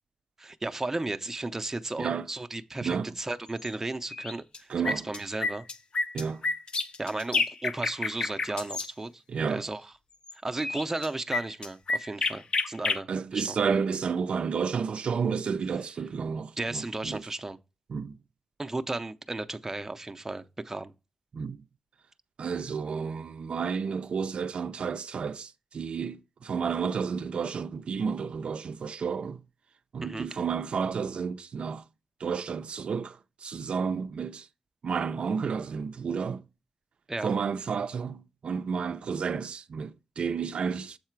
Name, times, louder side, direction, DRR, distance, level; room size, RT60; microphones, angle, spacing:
voice 1, 0.4-5.7 7.0-9.2 9.5-9.8 10.4-13.6 16.6-17.6 18.6-20.9 30.0-30.4 37.1-37.4, right 2 dB, 20° right, 0.5 m, -34 dB
sound 1, 3.6-3.7 4.1-4.6 4.8-8.9 10.3-10.4 10.6-13.0, left 3 dB, 50° left, 0.5 m, -29 dB
voice 2, 4.7-5.1 6.1-6.4 9.3-9.6 13.1-17.2 17.9-18.2 21.3-21.6 22.4-29.4 29.9-31.8 32.2-34.5 34.8-36.4 37.2-41.0, right 6 dB, 65° right, 0.4 m, -31 dB
7.4 x 4.7 x 4.5 m
wide cardioid pair, 135°, 2 cm